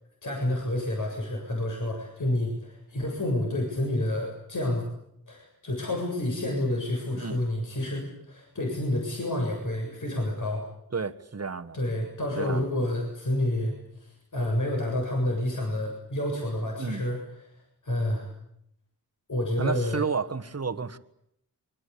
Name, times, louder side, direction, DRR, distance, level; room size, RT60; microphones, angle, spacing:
voice 1, 0.2-4.9 5.3-10.6 11.7-17.2 17.8-18.3 19.3-20.1, left 1 dB, 55° left, 7.4 m, -29 dB
voice 2, 10.9-11.8 12.4-12.6 16.8-17.0 19.6-21.0, right 5 dB, 40° right, 1.6 m, -31 dB
26.0 x 24.0 x 8.6 m
wide cardioid pair, 75°, 37 cm